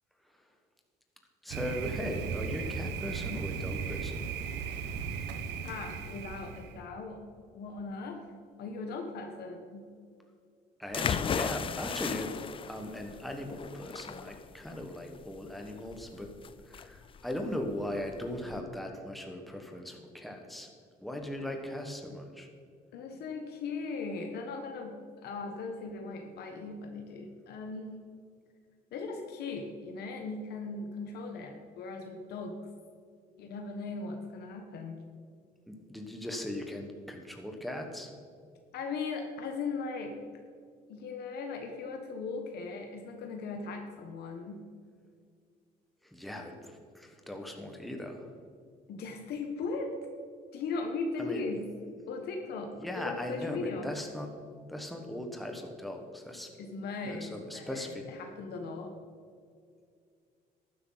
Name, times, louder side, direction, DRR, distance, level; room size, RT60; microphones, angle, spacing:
voice 1, 1.4-4.3 10.8-12.4 12.7-16.3 16.6-20.7 21.0-22.5 35.7-38.1 46.0-48.3 51.2-51.4 52.8-54.4 54.7-56.5 57.0-58.1, left 1 dB, ahead, 3 dB, 1.4 m, -39 dB
Thunder, 1.5-6.8, right 6 dB, 85° right, 1.0 m, -36 dB
voice 2, 5.6-7.2 7.5-8.2 8.6-9.9 22.9-27.9 28.9-32.6 33.4-35.0 38.7-40.2 40.9-44.6 48.9-49.9 50.5-51.7 52.1-53.9 56.6-58.9, left 4 dB, 70° left, 3 dB, 1.2 m, -38 dB
sound 1, 10.9-18.6, left 7 dB, 30° left, 0.4 m, -36 dB
12.0 x 10.5 x 4.0 m, 2.2 s
cardioid pair, 110°, 17 cm